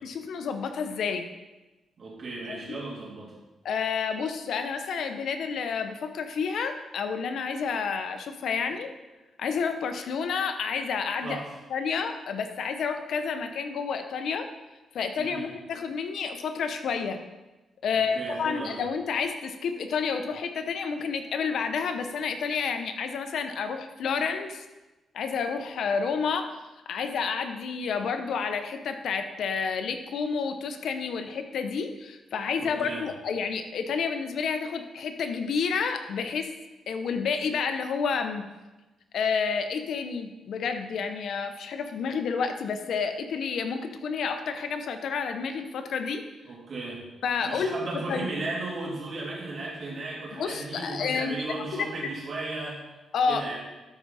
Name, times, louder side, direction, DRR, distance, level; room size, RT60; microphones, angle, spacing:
voice 1, 0.0-1.2 2.5-2.8 3.6-8.9 9.4-11.4 11.7-14.5 14.9-17.2 17.8-24.6 25.1-26.5 26.9-36.5 36.9-38.5 39.1-46.2 47.2-48.3 50.3-51.4 51.7-52.1 53.1-53.5, left 5 dB, 75° left, 7 dB, 0.8 m, -30 dB
voice 2, 2.0-3.3 11.2-11.4 15.2-15.5 17.9-18.8 32.6-33.0 46.5-47.0 47.4-52.8 53.3-53.6, right 2 dB, 50° right, -4 dB, 3.0 m, -35 dB
12.5 x 4.8 x 4.1 m, 1.1 s
cardioid pair, 105°, 0 cm